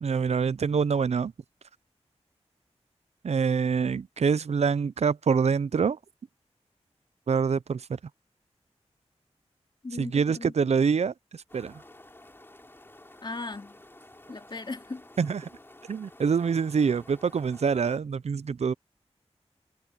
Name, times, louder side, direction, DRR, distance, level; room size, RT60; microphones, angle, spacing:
voice 1, 0.0-1.3 3.2-6.0 7.3-8.0 9.9-11.8 15.2-15.4 15.9-18.7, right 6 dB, 75° right, 0.5 m, -25 dB
voice 2, 9.8-10.5 13.2-13.8 14.3-15.0, left 3 dB, 45° left, 3.4 m, -37 dB
sound 1, 11.5-18.0, left 1 dB, 20° left, 3.3 m, -52 dB
wide cardioid pair, 95°, 11 cm